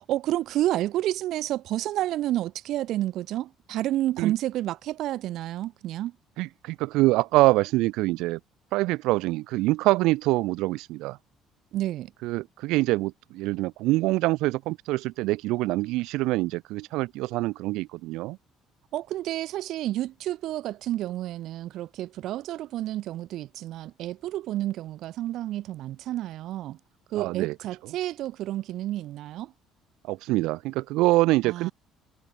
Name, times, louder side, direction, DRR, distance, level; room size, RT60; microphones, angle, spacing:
voice 1, 0.1-6.1 11.7-12.1 18.9-26.8 27.1-29.5 31.4-31.7, right 14 dB, 65° right, 3.1 m, -30 dB
voice 2, 6.4-8.4 8.7-11.2 12.2-18.4 27.1-27.5 27.8-27.9 30.1-31.7, right 20 dB, 85° right, 1.9 m, -25 dB
cardioid pair, 140°, 0 cm